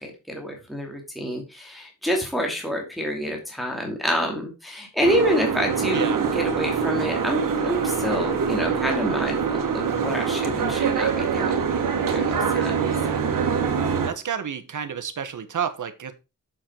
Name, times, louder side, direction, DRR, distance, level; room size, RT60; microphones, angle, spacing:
voice 1, 0.0-11.6 11.9-12.6, equal, ahead, 1 dB, 2.6 m, -27 dB
Boat Water vehicle, 5.0-14.1, right 6 dB, 85° right, 1.8 m, -24 dB
voice 2, 5.9-6.2 14.0-16.1, right 7 dB, 70° right, 11 dB, 1.4 m, -30 dB
7.4 x 7.3 x 4.5 m, 0.27 s
wide cardioid pair, 110°, 32 cm